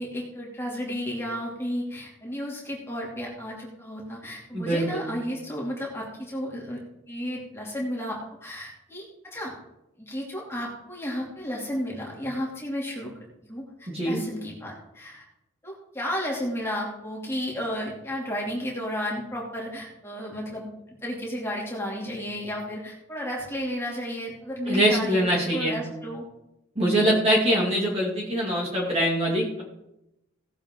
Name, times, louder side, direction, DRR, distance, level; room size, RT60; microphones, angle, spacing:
voice 1, 0.0-6.8 7.1-9.5 10.0-13.1 13.4-15.2 15.6-26.2, equal, 10° left, -4 dB, 2.7 m, -33 dB
voice 2, 4.5-5.1 13.9-14.2 24.7-25.8 26.8-29.6, equal, 30° right, -4 dB, 2.4 m, -23 dB
18.0 x 7.5 x 3.8 m, 0.88 s
head